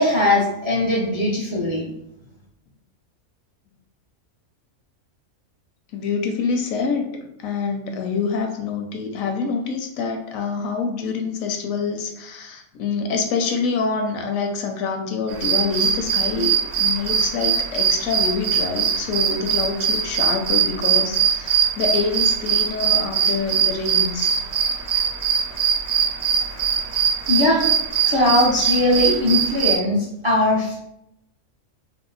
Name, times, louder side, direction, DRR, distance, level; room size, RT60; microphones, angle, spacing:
voice 1, 0.0-1.9 27.3-27.7 28.1-30.0 30.2-30.8, left 1 dB, 40° right, -5 dB, 0.4 m, -19 dB
voice 2, 5.9-7.1 7.4-24.3, left 5 dB, 80° left, 3 dB, 1.0 m, -26 dB
sound 1, 15.3-29.8, right 7 dB, 65° right, 0.8 m, -22 dB
2.7 x 2.1 x 3.9 m, 0.79 s
omnidirectional pair, 1.4 m